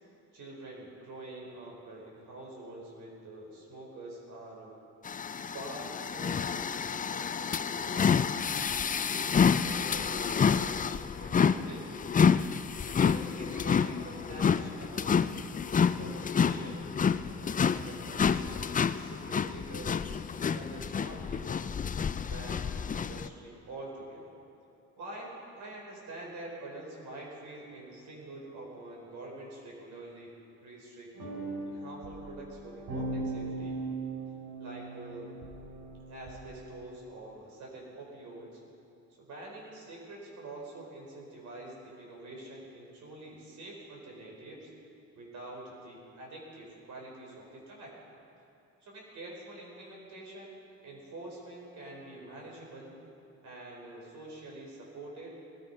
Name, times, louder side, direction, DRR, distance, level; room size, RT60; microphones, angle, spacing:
voice 1, 0.3-4.7 5.5-8.5 9.0-11.9 12.8-15.3 15.7-17.0 17.4-21.7 22.2-24.3 25.0-33.8 34.6-35.3 36.1-38.6 39.2-44.7 45.1-47.9 48.8-52.9 53.4-55.3, right 2 dB, 70° right, -2 dB, 4.9 m, -46 dB
sound 1, 5.1-23.3, left 6 dB, 30° left, 0.4 m, -29 dB
sound 2, 31.2-37.0, right 2 dB, 90° right, 3.6 m, -39 dB
19.0 x 14.0 x 5.5 m, 2.6 s
cardioid pair, 90°, 30 cm